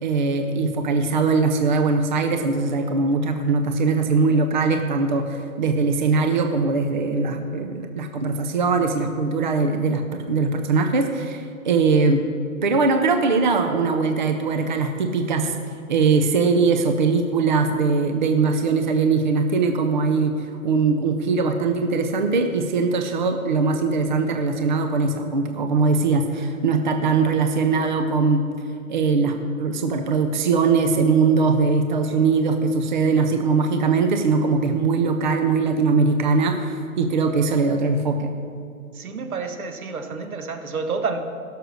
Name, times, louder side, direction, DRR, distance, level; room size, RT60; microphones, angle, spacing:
voice 1, 0.0-12.2 12.6-15.6 15.9-20.3 20.6-28.4 28.9-38.3, right 4 dB, 35° right, 6 dB, 0.6 m, -21 dB
voice 2, 38.9-41.2, right 4 dB, 80° right, 6 dB, 1.6 m, -29 dB
16.0 x 6.6 x 6.4 m, 2.3 s
hypercardioid pair, 170°, 42 cm